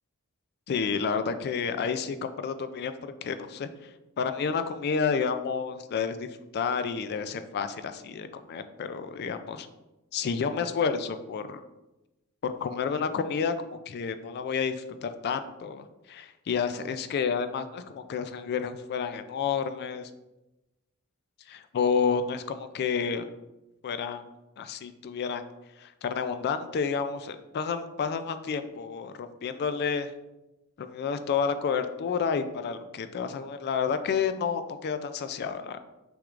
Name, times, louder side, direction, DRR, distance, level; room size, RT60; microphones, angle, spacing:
voice 1, 0.7-3.7 4.2-6.3 6.5-9.7 10.1-11.6 12.4-20.1 21.5-23.3 23.8-24.3 24.6-25.4 25.8-30.1 30.8-35.8, left 6 dB, 50° left, 10 dB, 0.3 m, -30 dB
6.0 x 3.5 x 2.4 m, 0.99 s
head